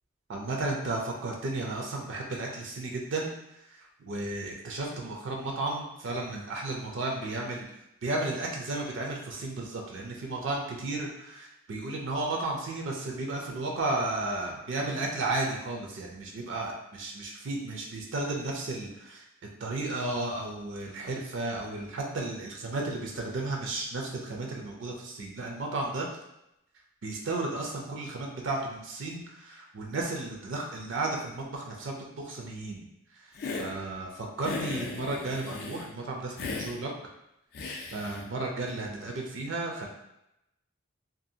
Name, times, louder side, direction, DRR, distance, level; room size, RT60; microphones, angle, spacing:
voice 1, 0.3-3.3 4.0-7.7 8.0-19.3 19.6-26.1 27.0-32.8 33.1-33.3 33.5-36.9 37.9-39.9, right 2 dB, 60° right, 0 dB, 0.4 m, -33 dB
Hiss, 33.4-33.7 34.4-35.9 36.4-36.8 37.5-38.2, left 4 dB, 50° left, 0.3 m, -36 dB
2.6 x 2.3 x 2.7 m, 0.85 s
head